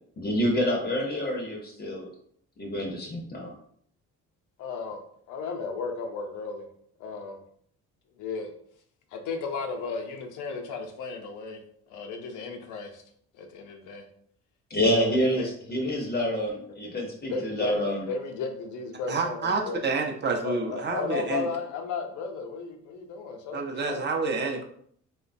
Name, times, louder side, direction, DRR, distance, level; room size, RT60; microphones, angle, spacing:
voice 1, 0.2-2.1 2.6-3.5 14.7-18.1, equal, 30° left, 1 dB, 0.6 m, -27 dB
voice 2, 4.6-5.0 5.3-6.7 7.0-7.4 8.2-8.5 9.1-11.6 11.9-13.0 13.4-14.0 14.9-15.5 15.7-15.8 17.3-19.8 20.4-24.1, left 4 dB, 85° left, 4 dB, 0.5 m, -34 dB
voice 3, 19.1-21.5 23.5-24.6, right 4 dB, 35° right, 2 dB, 0.5 m, -28 dB
3.0 x 2.1 x 2.5 m, 0.64 s
cardioid pair, 90°, 30 cm